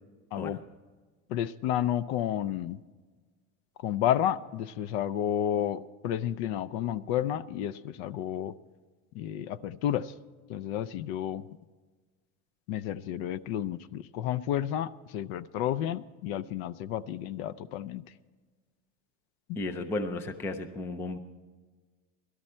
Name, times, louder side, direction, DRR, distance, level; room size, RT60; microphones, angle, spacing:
voice 1, 1.3-2.8 3.8-8.5 9.1-10.1 10.5-11.5 12.7-18.0, left 11 dB, 50° left, 16 dB, 0.6 m, -31 dB
voice 2, 19.6-21.2, left 2 dB, 5° left, 7 dB, 0.3 m, -34 dB
18.5 x 12.5 x 4.3 m, 1.4 s
supercardioid pair, 150°, 39 cm